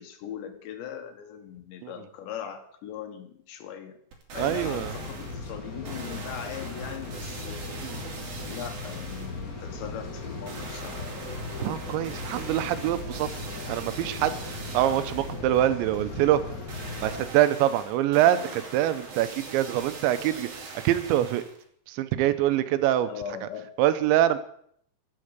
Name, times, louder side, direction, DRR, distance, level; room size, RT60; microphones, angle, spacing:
voice 1, 0.0-4.0 4.4-7.8 8.4-11.1 15.4-15.9 18.2-18.6 23.0-23.7, left 9 dB, 80° left, 7 dB, 3.7 m, -40 dB
sound 1, 4.1-5.4 5.8-9.4 10.5-15.4 16.7-21.6 22.1-22.2, right 3 dB, 55° right, 4.2 m, -42 dB
sound 2, 4.3-17.3, left 3 dB, 40° left, 1.2 m, -38 dB
voice 2, 4.4-4.9 7.8-8.0 11.6-13.3 13.7-16.4 17.0-20.5 20.8-21.4 21.9-23.1 23.8-24.4, right 13 dB, 85° right, 12 dB, 3.2 m, -24 dB
13.0 x 7.7 x 8.1 m, 0.65 s
omnidirectional pair, 5.1 m